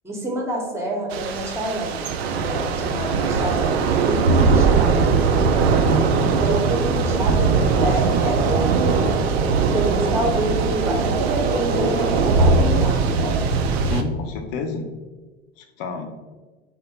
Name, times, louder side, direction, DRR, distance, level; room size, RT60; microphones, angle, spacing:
voice 1, 0.0-2.0 2.3-5.1 6.4-9.2 9.6-13.4, right 1 dB, 10° right, 0 dB, 0.9 m, -27 dB
Thunder / Rain, 1.1-14.0, right 4 dB, 70° right, 0.5 m, -20 dB
voice 2, 6.1-6.4 13.8-14.8 15.6-16.1, left 4 dB, 55° left, 5 dB, 0.7 m, -30 dB
3.4 x 2.2 x 4.1 m, 1.3 s
figure-of-eight pair, 75°, 33 cm